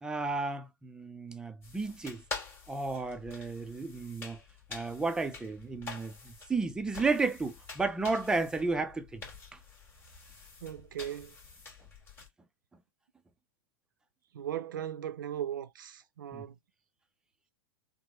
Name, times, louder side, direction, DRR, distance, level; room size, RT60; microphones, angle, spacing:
voice 1, 0.0-2.2 2.7-4.4 4.7-9.2 16.3-16.4, right 3 dB, 5° right, 0.5 m, -33 dB
sound 1, 1.6-12.3, left 4 dB, 20° left, 1.6 m, -47 dB
voice 2, 10.6-11.3 14.3-16.5, right 10 dB, 75° right, 0.6 m, -38 dB
3.5 x 2.1 x 3.0 m
hypercardioid pair, 115°, 11 cm